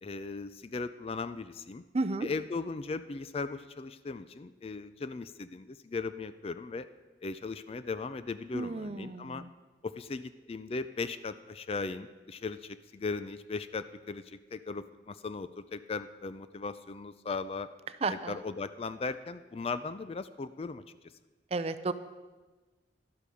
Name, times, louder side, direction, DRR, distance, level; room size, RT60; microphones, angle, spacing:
voice 1, 0.0-1.8 2.2-6.9 7.2-9.4 9.8-17.7 18.1-20.8, left 4 dB, 35° left, 13 dB, 0.4 m, -38 dB
voice 2, 1.9-2.3 8.5-9.5 18.0-18.3 21.5-21.9, right 3 dB, 35° right, 11 dB, 0.5 m, -32 dB
12.0 x 11.5 x 4.9 m, 1.2 s
head